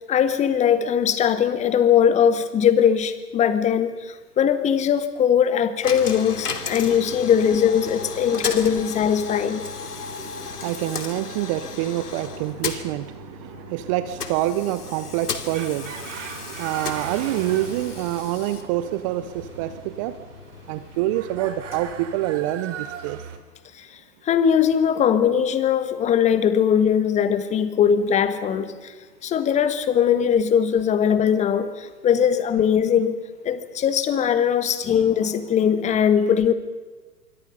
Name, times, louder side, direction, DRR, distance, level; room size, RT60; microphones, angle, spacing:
voice 1, 0.1-9.7 23.7-23.9 24.2-28.9 29.2-33.2 33.4-36.5, left 8 dB, 15° left, 12 dB, 1.5 m, -20 dB
Coin (dropping), 5.8-22.8, left 6 dB, 75° left, 2.8 m, -35 dB
voice 2, 9.8-20.2 20.7-23.2, right 14 dB, 20° right, 13 dB, 0.7 m, -27 dB
sound 1, 15.4-23.4, right 9 dB, 50° right, 3.1 m, -39 dB
26.5 x 23.5 x 5.4 m, 1.4 s
hypercardioid pair, 125°, 46 cm